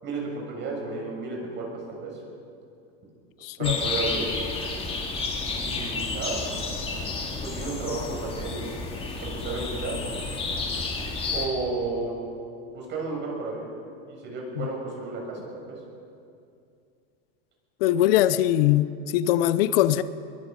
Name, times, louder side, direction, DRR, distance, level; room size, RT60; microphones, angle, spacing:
voice 1, 0.0-2.2 3.6-4.4 5.6-6.4 7.4-8.8 9.2-10.0 11.3-12.1 12.7-13.7 14.1-15.8, right 3 dB, 40° right, 7.0 m, -32 dB
voice 2, 3.4-3.8 14.6-14.7 17.8-20.0, left 13 dB, 75° left, 0.8 m, -21 dB
sound 1, 3.6-11.5, left 3 dB, 20° left, 2.8 m, -31 dB
22.5 x 22.0 x 5.4 m
supercardioid pair, 140°, 30 cm